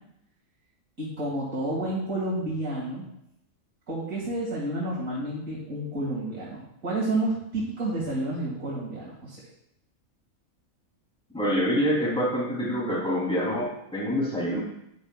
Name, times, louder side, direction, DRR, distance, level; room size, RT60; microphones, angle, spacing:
voice 1, 1.0-3.0 3.9-9.4, right 1 dB, 75° right, -8 dB, 2.7 m, -30 dB
voice 2, 11.3-14.6, equal, 5° left, -6 dB, 3.2 m, -26 dB
10.5 x 9.8 x 2.4 m, 0.77 s
omnidirectional pair, 1.4 m